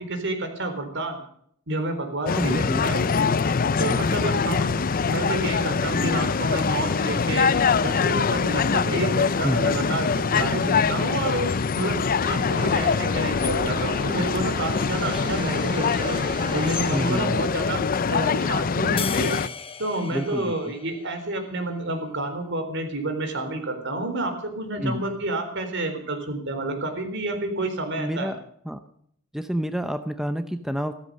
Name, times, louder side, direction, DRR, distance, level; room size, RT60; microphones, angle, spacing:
voice 1, 0.1-1.2 1.7-3.1 3.8-4.7 5.0-16.2 16.5-19.4 19.8-28.3, right 2 dB, 60° right, 6 dB, 3.9 m, -29 dB
sound 1, 2.3-19.5, left 5 dB, 40° left, 0.5 m, -24 dB
voice 2, 2.3-3.4 3.6-4.4 9.4-9.7 15.1-15.2 16.9-17.4 20.1-20.7 24.8-25.1 28.0-28.4 28.6-28.8 29.3-30.9, equal, ahead, 9 dB, 0.7 m, -29 dB
sound 2, 12.2-17.2, right 1 dB, 25° right, 2.5 m, -36 dB
sound 3, 19.0-21.6, left 6 dB, 25° left, 1.1 m, -36 dB
15.5 x 13.5 x 6.4 m, 0.65 s
head